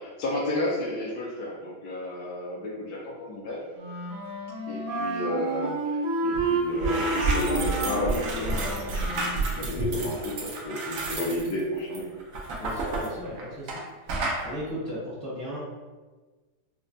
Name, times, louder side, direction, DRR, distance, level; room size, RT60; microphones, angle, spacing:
voice 1, 0.0-3.6 4.7-12.1, left 1 dB, 70° left, -3 dB, 0.9 m, -32 dB
Wind instrument woodwind instrument, 3.7-9.4, right 2 dB, 65° right, 1.3 m, -30 dB
sound 1, 6.3-6.4 6.7-13.8 14.1-14.4, right 3 dB, 85° right, 0.7 m, -30 dB
voice 2, 12.6-13.8 14.4-15.6, equal, 25° left, -10 dB, 0.7 m, -36 dB
5.0 x 2.1 x 2.5 m, 1.3 s
omnidirectional pair, 2.2 m